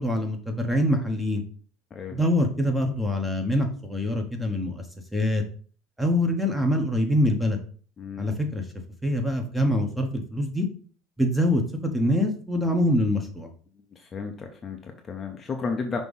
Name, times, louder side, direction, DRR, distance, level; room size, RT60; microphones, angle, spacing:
voice 1, 0.0-1.4 2.1-4.8 5.1-5.4 6.0-7.6 8.2-8.6 9.0-10.7 11.2-11.6 11.9-13.5, left 1 dB, 5° right, 4 dB, 1.2 m, -24 dB
voice 2, 8.0-8.3 13.9-16.0, left 4 dB, 25° left, 3 dB, 0.8 m, -33 dB
5.8 x 3.0 x 5.4 m, 0.43 s
supercardioid pair, 130°, 0 cm